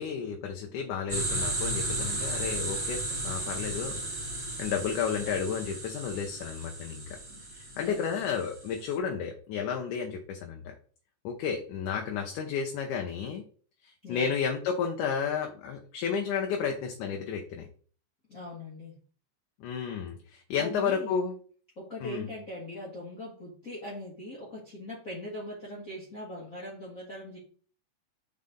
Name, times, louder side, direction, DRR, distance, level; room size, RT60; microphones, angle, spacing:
voice 1, 0.0-4.0 4.4-7.0 7.5-10.6 11.2-13.4 14.1-17.7 19.6-21.4 22.0-22.3, left 6 dB, 80° left, 2 dB, 2.4 m, -32 dB
sound 1, 1.1-8.8, right 1 dB, 20° right, 2.2 m, -34 dB
voice 2, 7.7-8.2 14.0-14.4 18.3-18.9 20.6-21.1 21.8-27.4, left 1 dB, 30° left, -6 dB, 1.9 m, -41 dB
7.6 x 5.5 x 3.7 m, 0.43 s
omnidirectional pair, 3.6 m